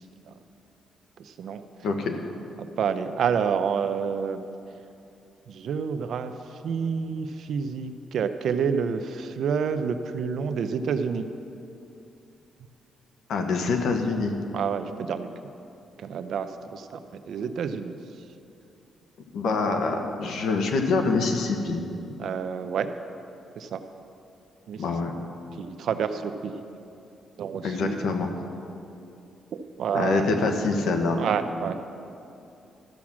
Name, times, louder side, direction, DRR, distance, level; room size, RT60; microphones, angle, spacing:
voice 1, 1.2-1.6 2.6-4.4 5.5-6.3 6.6-11.3 14.5-15.3 16.0-18.0 22.2-22.9 23.6-23.8 24.7-24.8 25.6-26.6 27.4-28.0 29.5-30.2 31.2-31.8, right 6 dB, 65° right, 9 dB, 0.6 m, -28 dB
voice 2, 1.8-2.1 13.3-14.4 19.3-21.9 24.8-25.1 27.6-28.3 29.9-31.2, left 4 dB, 75° left, 4 dB, 1.2 m, -25 dB
13.5 x 6.2 x 7.2 m, 2.7 s
cardioid pair, 140°, 0 cm